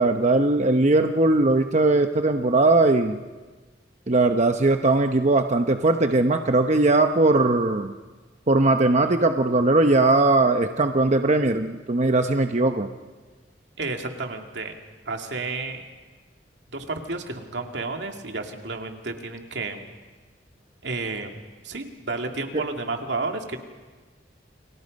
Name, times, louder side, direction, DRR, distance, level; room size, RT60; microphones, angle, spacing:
voice 1, 0.0-3.2 4.1-7.9 8.5-12.9 22.5-22.6, right 2 dB, 40° right, 6 dB, 0.9 m, -20 dB
voice 2, 13.8-14.7 15.1-15.8 16.7-19.9 20.8-21.3 21.6-23.6, right 3 dB, 80° right, 3 dB, 2.5 m, -31 dB
29.5 x 23.5 x 5.4 m, 1.3 s
head